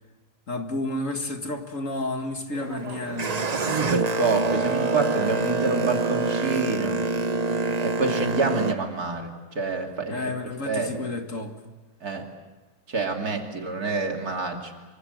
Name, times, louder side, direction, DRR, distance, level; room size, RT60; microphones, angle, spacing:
voice 1, 0.5-3.5 10.1-11.5, left 2 dB, 50° left, 5 dB, 2.3 m, -31 dB
Boat Water vehicle, 2.5-8.7, right 3 dB, 35° right, 0.8 m, -26 dB
voice 2, 3.5-7.0 7.8-10.3 10.7-10.9 12.0-12.3 12.9-14.7, right 3 dB, 65° right, 3 dB, 3.2 m, -27 dB
25.5 x 24.5 x 7.8 m, 1.2 s
omnidirectional pair, 1.7 m